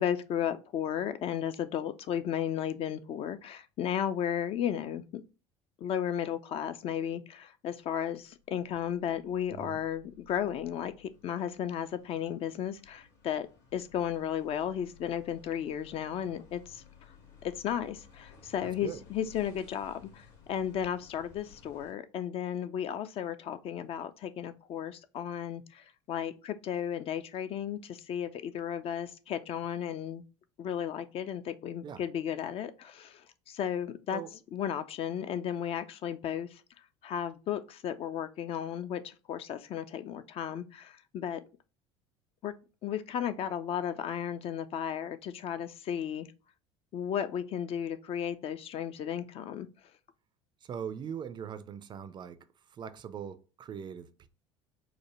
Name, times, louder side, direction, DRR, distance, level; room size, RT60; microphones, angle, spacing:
voice 1, 0.0-5.2 5.8-16.8 17.4-30.2 30.6-34.2 34.5-36.6 37.0-41.4 42.4-42.5 42.8-46.3 46.9-49.7, left 9 dB, 40° left, 0.4 m, -34 dB
sound 1, 8.4-21.9, left 7 dB, 65° left, 1.6 m, -57 dB
voice 2, 50.6-54.3, right 8 dB, 30° right, 0.4 m, -41 dB
4.7 x 2.1 x 3.0 m
figure-of-eight pair, 65°, 15 cm